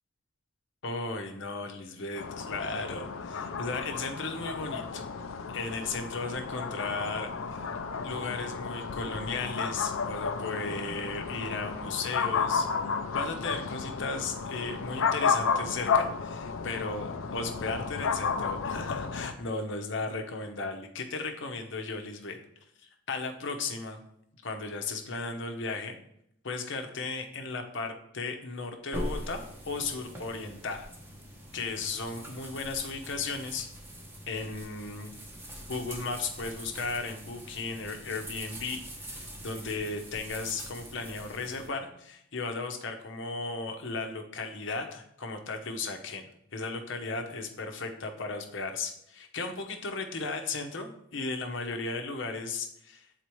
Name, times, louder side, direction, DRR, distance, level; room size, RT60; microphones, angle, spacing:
voice 1, 0.8-5.0 5.5-7.7 8.0-12.7 13.1-22.4 22.8-24.0 24.4-26.0 26.4-30.9 31.5-33.7 34.3-35.1 35.7-38.8 39.1-53.1, left 3 dB, 60° left, 4 dB, 0.8 m, -35 dB
sound 1, 2.2-19.3, left 5 dB, 85° left, 0.5 m, -32 dB
sound 2, 28.9-41.7, equal, 10° right, 0.8 m, -43 dB
8.3 x 4.1 x 3.1 m, 0.73 s
head